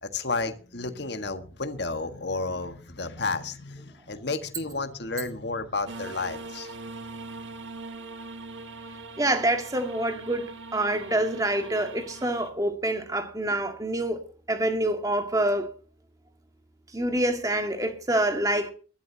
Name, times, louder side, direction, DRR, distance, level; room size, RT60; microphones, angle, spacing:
voice 1, 0.0-6.7, left 3 dB, 60° left, 1.6 m, -32 dB
sound 1, 5.9-12.5, right 3 dB, 75° right, 1.5 m, -41 dB
voice 2, 9.2-14.2 14.5-15.7 16.9-18.7, right 1 dB, 15° right, 1.8 m, -26 dB
23.5 x 12.0 x 2.8 m
head